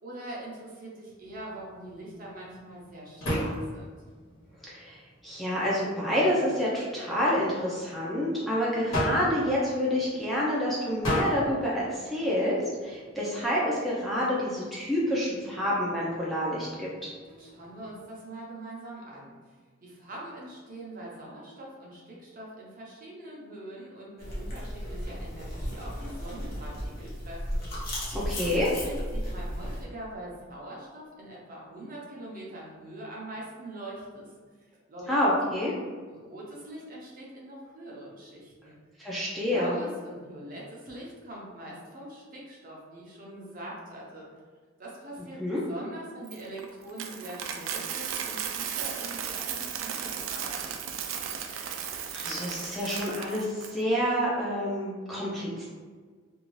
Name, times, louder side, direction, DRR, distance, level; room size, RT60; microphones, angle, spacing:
voice 1, 0.0-4.0 17.3-19.5 19.8-28.0 28.2-34.3 34.9-35.1 36.1-38.8 39.5-44.3 44.8-50.8, right 1 dB, 45° right, -4 dB, 0.7 m, -43 dB
sound 1, 1.2-18.1, equal, 85° left, 1.1 m, -38 dB
voice 2, 4.6-5.0 5.2-17.1 28.1-28.7 35.1-35.7 39.0-39.8 45.4-45.6 51.5-51.8 52.1-55.7, equal, ahead, -8 dB, 0.4 m, -28 dB
sound 2, 24.2-29.8, equal, 45° left, 0.9 m, -35 dB
Coin (dropping), 46.3-53.7, right 8 dB, 75° right, 0.3 m, -35 dB
2.6 x 2.3 x 3.0 m, 1.5 s
head